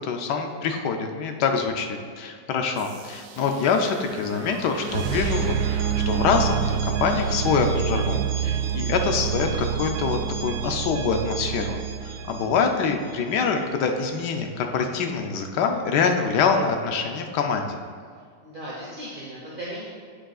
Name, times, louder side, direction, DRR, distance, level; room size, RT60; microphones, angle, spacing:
voice 1, 0.0-17.8, left 5 dB, 70° left, 4 dB, 1.0 m, -25 dB
sound 1, 2.8-13.6, right 8 dB, 75° right, 1.1 m, -28 dB
voice 2, 18.1-19.8, right 1 dB, 40° right, -5 dB, 0.7 m, -37 dB
8.7 x 7.5 x 2.4 m, 2.1 s
omnidirectional pair, 2.2 m